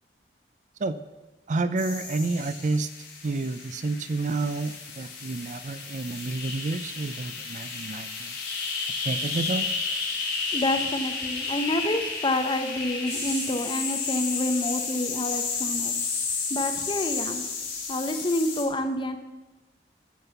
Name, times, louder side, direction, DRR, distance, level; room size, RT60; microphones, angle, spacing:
voice 1, 1.5-2.9 3.2-8.4 9.0-9.7, right 3 dB, 45° right, 13 dB, 0.5 m, -29 dB
sound 1, 1.8-18.6, left 4 dB, 70° left, 3.3 m, -32 dB
sound 2, 2.2-2.5 4.3-4.8 6.1-6.3 9.1-9.5 13.0-13.5 14.6-14.8 15.8-16.3 17.7-17.9, right 4 dB, 90° right, 3.2 m, -43 dB
voice 2, 10.5-15.9 16.5-17.4 17.9-19.2, left 1 dB, 30° left, 7 dB, 0.9 m, -28 dB
13.5 x 5.5 x 7.0 m, 1.1 s
head